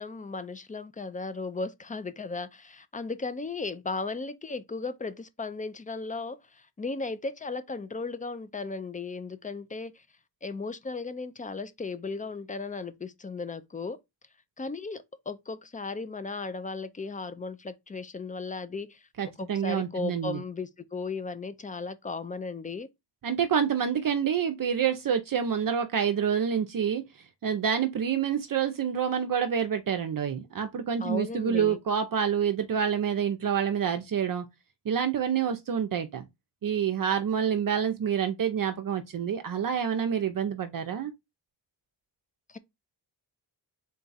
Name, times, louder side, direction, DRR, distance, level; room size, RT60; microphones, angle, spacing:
voice 1, 0.0-10.0 10.4-14.0 14.6-19.1 19.4-22.9 31.0-31.8 42.5-42.6, left 3 dB, 20° left, 0.4 m, -36 dB
voice 2, 19.2-20.4 23.2-27.0 27.4-34.5 34.9-36.3 36.6-41.1, right 8 dB, 50° right, 0.6 m, -27 dB
3.9 x 2.3 x 3.9 m
cardioid pair, 90°, 42 cm